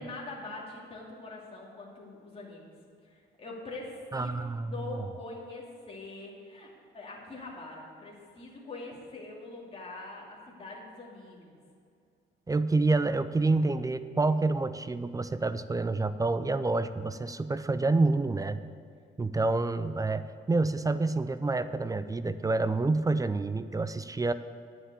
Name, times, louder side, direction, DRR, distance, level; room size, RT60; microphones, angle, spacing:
voice 1, 0.0-2.7 3.0-6.7 6.9-11.6, left 2 dB, 30° left, -3 dB, 2.5 m, -43 dB
voice 2, 4.1-4.7 12.5-18.6 19.2-24.3, right 3 dB, 15° right, 13 dB, 0.4 m, -28 dB
9.9 x 5.7 x 8.2 m, 2.3 s
cardioid pair, 90°, 20 cm